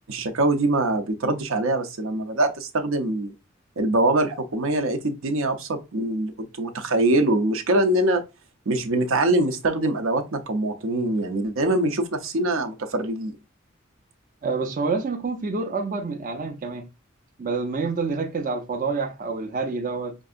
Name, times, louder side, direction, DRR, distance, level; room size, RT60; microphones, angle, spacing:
voice 1, 0.1-3.3 3.8-8.2 8.7-13.3, right 2 dB, 80° right, 0.6 m, -23 dB
voice 2, 14.4-16.9 17.4-20.1, right 4 dB, 40° right, 0.5 m, -27 dB
5.3 x 2.6 x 2.4 m
head